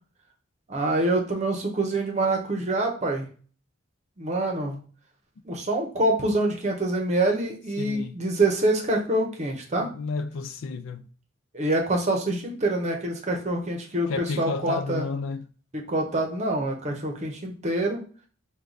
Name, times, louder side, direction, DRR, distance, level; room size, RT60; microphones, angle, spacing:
voice 1, 0.7-3.3 4.2-4.8 5.4-9.9 11.5-15.1 15.7-18.0, right 2 dB, 35° right, 0.8 m, -26 dB
voice 2, 7.8-8.1 9.8-11.1 14.1-15.5, left 4 dB, 75° left, 0.4 m, -31 dB
4.6 x 2.3 x 3.9 m
head